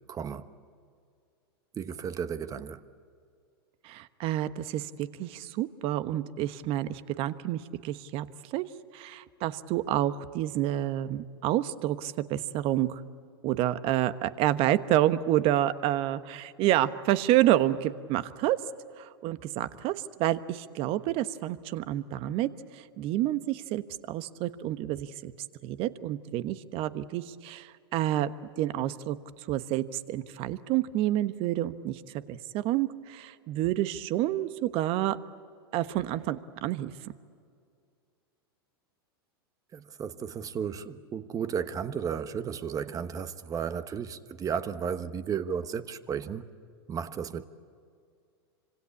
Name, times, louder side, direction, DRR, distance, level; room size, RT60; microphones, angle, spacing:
voice 1, 0.1-0.5 1.7-2.8 39.7-46.5 46.9-47.4, right 7 dB, 25° right, 1.2 m, -34 dB
voice 2, 3.8-8.3 8.5-8.6 8.9-13.0 13.4-18.6 19.0-19.9 20.2-25.3 25.6-28.3 28.6-32.0 32.3-35.2 35.7-36.9, right 13 dB, 45° right, 1.2 m, -29 dB
26.5 x 26.0 x 8.5 m
hypercardioid pair, 110°, 13 cm